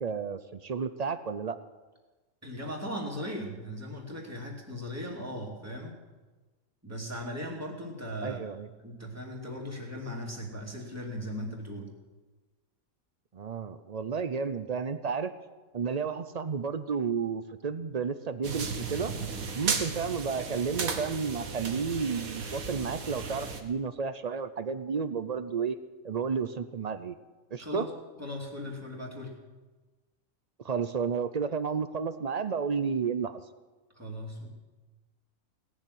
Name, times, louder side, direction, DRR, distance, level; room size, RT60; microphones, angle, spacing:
voice 1, 0.0-1.6 8.2-8.7 13.3-15.3 15.7-19.1 19.6-25.8 26.0-27.1 27.5-27.9 30.6-33.4, right 5 dB, 50° right, 12 dB, 0.5 m, -32 dB
voice 2, 2.4-6.0 6.8-8.4 8.8-11.9 27.6-27.9 28.2-29.4 34.0-34.5, equal, 10° right, -1 dB, 2.7 m, -38 dB
sound 1, 18.4-23.6, right 4 dB, 80° right, 1.8 m, -35 dB
18.0 x 7.3 x 9.9 m, 1.2 s
omnidirectional pair, 1.5 m